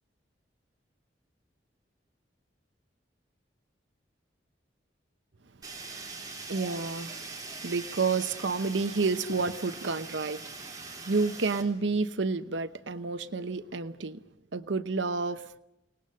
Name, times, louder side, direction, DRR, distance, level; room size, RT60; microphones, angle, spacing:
Fire, 5.6-11.6, right 4 dB, 20° right, 3.4 m, -42 dB
voice 1, 6.5-7.3 7.6-14.2 14.5-15.5, right 4 dB, 80° right, 0.9 m, -30 dB
29.5 x 19.0 x 6.5 m
head